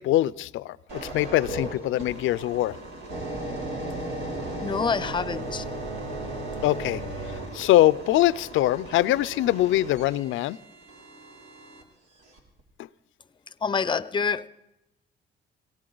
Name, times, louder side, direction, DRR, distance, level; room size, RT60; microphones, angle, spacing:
voice 1, 0.0-2.8 6.6-7.0 7.3-10.6 12.8-12.9, left 15 dB, 85° left, 19 dB, 0.5 m, -23 dB
sound 1, 0.9-11.8 12.4-12.6, right 1 dB, 85° right, 3.3 m, -36 dB
voice 2, 4.6-5.6 13.6-14.5, left 5 dB, 25° left, 17 dB, 0.6 m, -27 dB
18.0 x 17.0 x 3.9 m, 0.92 s
cardioid pair, 90°, 20 cm